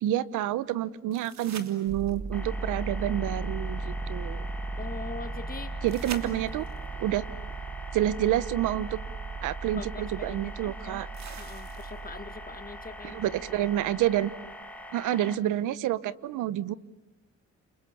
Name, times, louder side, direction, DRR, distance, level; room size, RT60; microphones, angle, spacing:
voice 1, 0.0-4.5 5.8-6.7 7.0-7.2 7.9-9.0 9.4-11.1 13.0-14.3 14.9-16.7, right 12 dB, 90° right, 18 dB, 1.0 m, -28 dB
sound 1, 1.1-2.4 5.9-6.9 8.8-8.9 11.1-12.2 15.1-15.2, right 7 dB, 65° right, 3.1 m, -44 dB
sound 2, 1.9-14.5, right 3 dB, 30° right, 1.2 m, -37 dB
sound 3, 2.3-15.4, left 1 dB, 5° left, 3.6 m, -44 dB
voice 2, 4.8-5.7 9.7-11.1 11.4-13.2, left 4 dB, 30° left, 10 dB, 2.1 m, -42 dB
29.5 x 28.0 x 7.2 m, 1.0 s
cardioid pair, 90°, 30 cm